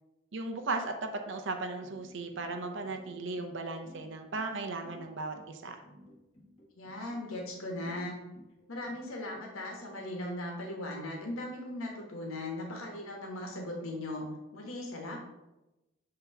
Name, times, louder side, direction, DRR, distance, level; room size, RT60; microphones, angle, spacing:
voice 1, 0.3-5.8, right 3 dB, 60° right, 5 dB, 0.6 m, -36 dB
sound 1, 1.8-9.4, equal, 30° left, 1.2 m, -55 dB
voice 2, 6.7-8.2 8.7-14.3 14.5-15.2, left 1 dB, 90° left, 0 dB, 1.3 m, -38 dB
6.9 x 3.0 x 5.7 m, 1.0 s
head